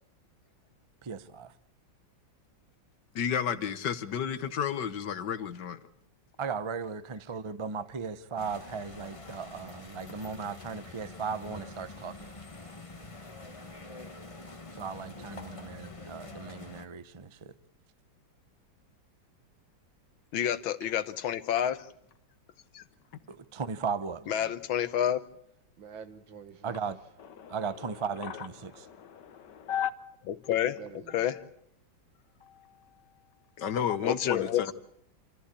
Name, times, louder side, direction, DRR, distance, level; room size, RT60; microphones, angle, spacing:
voice 1, 1.0-1.5 6.4-12.3 14.7-17.5 23.3-24.2 26.6-27.0 27.5-28.9, right 5 dB, 50° right, 0.3 m, -37 dB
voice 2, 3.1-5.8 27.4-27.6 28.2-29.9 32.4-32.9 33.6-34.7, left 8 dB, 65° left, 1.6 m, -33 dB
sound 1, 8.4-16.8, left 2 dB, 20° left, 1.3 m, -46 dB
voice 3, 20.3-21.9 22.7-22.8 24.3-25.2 30.3-30.8 31.1-31.3 34.0-34.7, left 10 dB, 90° left, 1.8 m, -29 dB
voice 4, 25.8-26.9 30.6-31.4, right 7 dB, 80° right, 2.2 m, -48 dB
27.5 x 14.5 x 8.4 m
omnidirectional pair, 2.1 m